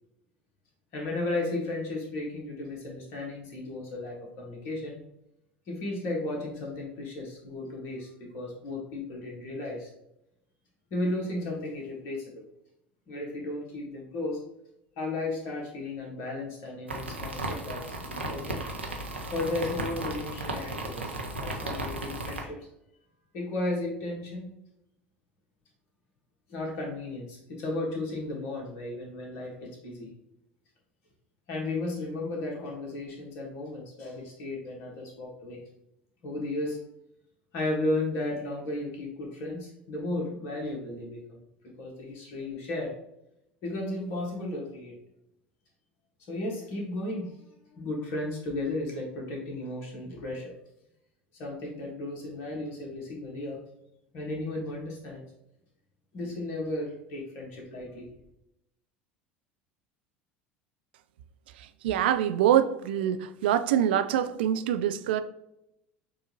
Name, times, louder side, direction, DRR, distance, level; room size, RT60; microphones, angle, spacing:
voice 1, 0.9-5.0 5.7-9.9 10.9-12.4 13.1-14.4 15.0-18.6 19.3-21.1 21.4-22.7 23.3-24.5 26.5-30.1 31.5-35.6 36.2-36.8 37.5-41.4 41.8-42.9 43.6-45.0 46.3-47.4 47.7-50.5 51.3-53.6 54.1-55.2 56.1-58.1, left 2 dB, 50° left, 1.5 m, -34 dB
sound 1, 16.9-22.4, right 1 dB, 85° right, 0.7 m, -35 dB
voice 2, 61.8-65.2, right 10 dB, 65° right, 0.3 m, -25 dB
6.4 x 2.6 x 2.9 m
figure-of-eight pair, 70°, 6 cm